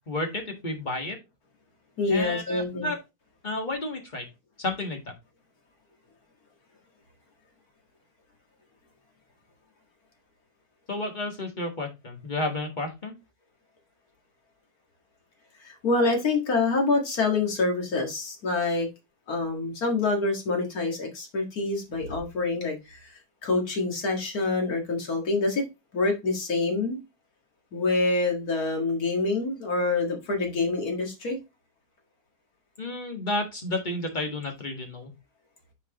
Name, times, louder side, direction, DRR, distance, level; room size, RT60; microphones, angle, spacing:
voice 1, 0.1-1.2 2.1-3.0 3.4-4.3 4.6-5.1 10.9-13.1 32.8-35.1, left 2 dB, 30° left, 1.6 m, -31 dB
voice 2, 2.0-2.9 15.6-18.9 19.3-25.6 25.9-27.0 27.7-31.4, left 3 dB, 65° left, 2.3 m, -26 dB
8.2 x 4.6 x 2.9 m
omnidirectional pair, 1.7 m